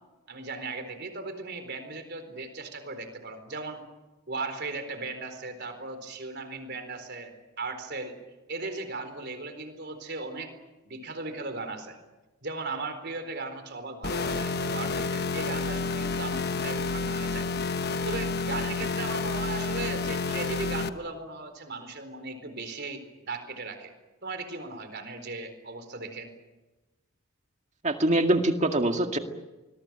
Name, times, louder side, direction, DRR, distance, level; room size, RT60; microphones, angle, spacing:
voice 1, 0.3-3.8 4.3-8.2 8.5-10.5 10.8-12.0 12.4-17.5 17.8-23.9 24.2-26.3, right 3 dB, 50° right, 8 dB, 4.2 m, -37 dB
sound 1, 14.0-20.9, left 4 dB, 45° left, 1.1 m, -30 dB
voice 2, 27.8-29.2, right 1 dB, 30° right, 5 dB, 2.1 m, -24 dB
26.0 x 21.5 x 8.8 m, 1.1 s
head